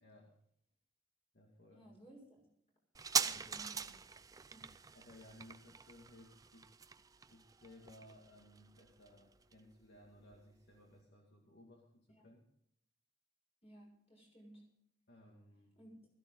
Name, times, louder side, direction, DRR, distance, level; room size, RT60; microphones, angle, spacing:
voice 1, 0.0-0.4 1.3-1.9 3.2-3.5 4.9-12.5 15.1-15.8, left 1 dB, 55° left, 0 dB, 2.2 m, -60 dB
voice 2, 1.7-2.5 3.2-3.9 4.4-4.7 12.1-12.2 13.6-14.6 15.8-16.0, right 1 dB, 30° left, 0 dB, 6.2 m, -58 dB
sound 1, 2.9-10.0 10.3-10.4, right 6 dB, 20° right, 0.4 m, -42 dB
16.5 x 15.0 x 3.9 m, 0.69 s
head